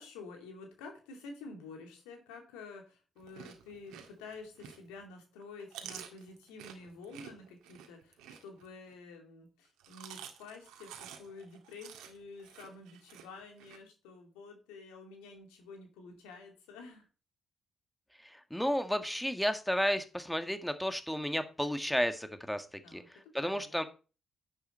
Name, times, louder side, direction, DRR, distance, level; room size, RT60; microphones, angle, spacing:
voice 1, 0.0-17.1 22.8-23.8, left 4 dB, 90° left, 3 dB, 2.6 m, -50 dB
Chewing mastication, 3.2-5.0 5.4-8.9 9.6-13.8, right 9 dB, 85° right, 1.7 m, -50 dB
voice 2, 18.3-22.6 22.9-23.0 23.3-23.8, equal, 5° left, 8 dB, 1.7 m, -32 dB
10.5 x 8.0 x 4.4 m, 0.33 s
hypercardioid pair, 50°, 0 cm